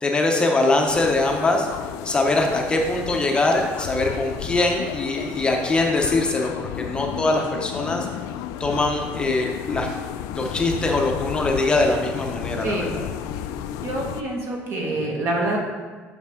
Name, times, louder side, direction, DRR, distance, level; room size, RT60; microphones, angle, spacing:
voice 1, 0.0-1.7 2.0-8.1 8.6-9.9 10.3-13.0, left 2 dB, 15° left, 1 dB, 0.6 m, -22 dB
sound 1, 0.9-14.2, left 10 dB, 85° left, 0.4 m, -32 dB
voice 2, 12.6-13.0 13.8-15.6, right 1 dB, 50° right, 0 dB, 1.5 m, -26 dB
6.9 x 6.5 x 3.6 m, 1.4 s
cardioid pair, 150°, 6 cm